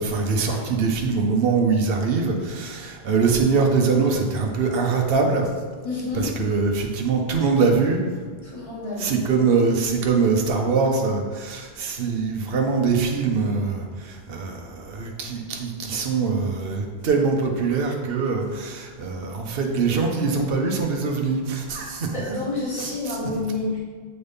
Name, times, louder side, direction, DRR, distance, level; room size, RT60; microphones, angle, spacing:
voice 1, 0.0-5.5 6.1-8.0 9.0-22.1 23.1-23.2, right 4 dB, 65° right, 2 dB, 1.0 m, -23 dB
voice 2, 5.8-6.4 8.4-9.1 22.1-23.8, left 2 dB, 35° left, -7 dB, 1.9 m, -29 dB
7.9 x 4.1 x 3.5 m, 1.5 s
omnidirectional pair, 1.0 m